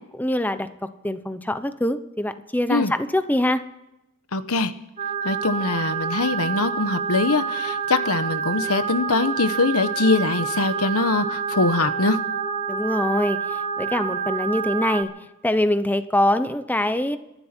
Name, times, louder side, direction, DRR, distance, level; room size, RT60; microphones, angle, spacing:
voice 1, 0.1-3.6 12.7-15.1 15.4-17.2, left 1 dB, 10° left, 11 dB, 0.8 m, -24 dB
voice 2, 4.3-4.7 5.2-12.2, left 3 dB, 85° left, 11 dB, 1.2 m, -22 dB
sound 1, 5.0-15.0, right 7 dB, 35° right, 1.9 m, -28 dB
27.5 x 11.5 x 4.5 m, 0.91 s
head